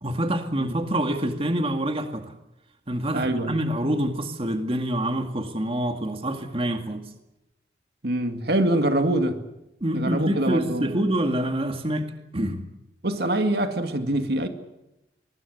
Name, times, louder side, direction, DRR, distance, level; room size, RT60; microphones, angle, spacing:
voice 1, 0.0-2.3 2.9-7.0 9.8-12.1 12.3-12.6, right 1 dB, 35° right, 2.1 m, -26 dB
voice 2, 3.1-3.5 8.0-9.4 9.9-10.9 13.0-14.5, right 1 dB, 60° right, 2.2 m, -24 dB
24.5 x 20.5 x 8.1 m
head